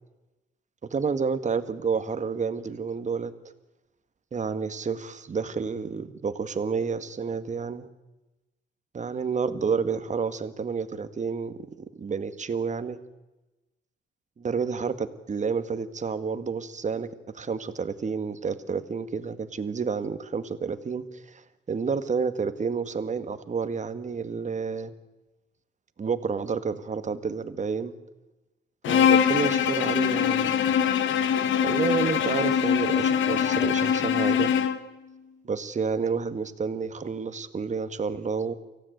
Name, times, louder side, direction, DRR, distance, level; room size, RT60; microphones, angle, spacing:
voice 1, 0.8-3.3 4.3-7.9 8.9-13.0 14.4-17.1 17.3-21.4 21.7-24.9 26.0-27.9 28.9-30.6 31.6-34.5 35.4-38.5, right 5 dB, 35° right, 11 dB, 1.8 m, -30 dB
Bowed string instrument, 28.8-34.9, left 8 dB, 75° left, 1.4 m, -23 dB
24.0 x 16.0 x 9.3 m, 1.1 s
cardioid pair, 90°, 20 cm